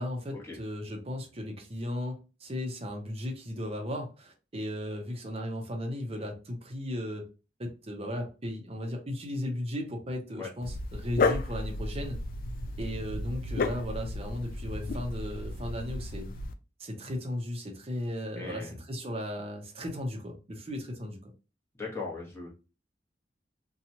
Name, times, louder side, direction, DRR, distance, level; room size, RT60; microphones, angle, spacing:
voice 1, 0.0-7.3 7.6-12.2 12.8-16.3 16.8-21.3, left 1 dB, 35° right, 2 dB, 0.7 m, -36 dB
Dog, 10.6-16.5, left 3 dB, 50° left, 0.3 m, -33 dB
voice 2, 18.4-18.8 21.7-22.5, left 4 dB, 15° left, -3 dB, 1.0 m, -39 dB
2.8 x 2.3 x 2.7 m, 0.31 s
head